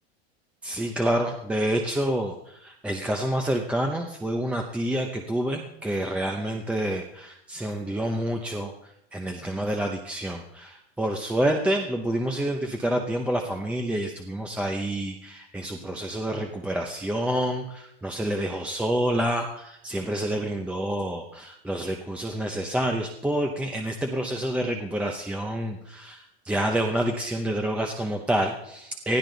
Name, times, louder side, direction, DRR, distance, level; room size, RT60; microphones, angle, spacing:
voice 1, 0.6-8.7 9.1-29.2, right 1 dB, 5° right, 2 dB, 0.7 m, -28 dB
20.0 x 13.5 x 4.0 m, 0.81 s
supercardioid pair, 155°, 33 cm